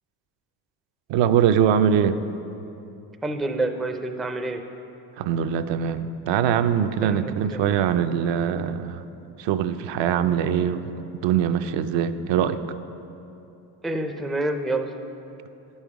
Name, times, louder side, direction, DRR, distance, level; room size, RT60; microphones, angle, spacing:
voice 1, 1.1-2.2 5.2-9.0 9.4-10.9 11.2-12.6, right 8 dB, 70° right, 9 dB, 0.5 m, -22 dB
voice 2, 3.2-4.6 7.0-7.6 13.8-14.9, right 2 dB, ahead, 5 dB, 0.3 m, -28 dB
10.5 x 5.6 x 4.8 m, 2.9 s
supercardioid pair, 85°, 46 cm